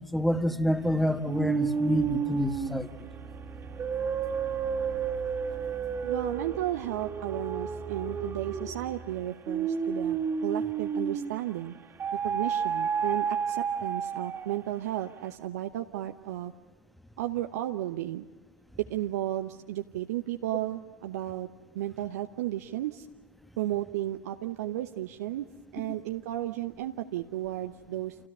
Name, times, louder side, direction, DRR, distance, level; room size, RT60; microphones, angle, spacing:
voice 1, 0.1-2.9, left 1 dB, ahead, 1.2 m, -27 dB
sound 1, 1.3-11.5 12.0-14.7, right 6 dB, 25° right, 2.3 m, -31 dB
voice 2, 6.0-11.7 12.2-16.5 17.2-18.2 18.8-21.5 21.7-23.1 23.6-25.5 25.7-28.2, right 14 dB, 60° right, 0.9 m, -33 dB
30.0 x 28.0 x 5.5 m
figure-of-eight pair, 95°, 10 cm